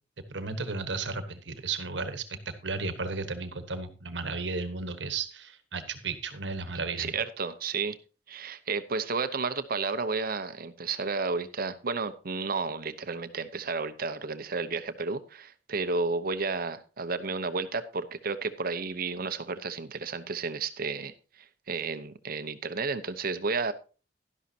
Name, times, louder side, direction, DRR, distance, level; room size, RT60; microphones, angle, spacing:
voice 1, 0.3-7.1, right 4 dB, 70° right, 10 dB, 1.3 m, -34 dB
voice 2, 7.0-8.0 8.3-21.1 21.7-23.7, right 4 dB, 55° right, 12 dB, 0.9 m, -32 dB
12.0 x 11.5 x 2.8 m, 0.35 s
head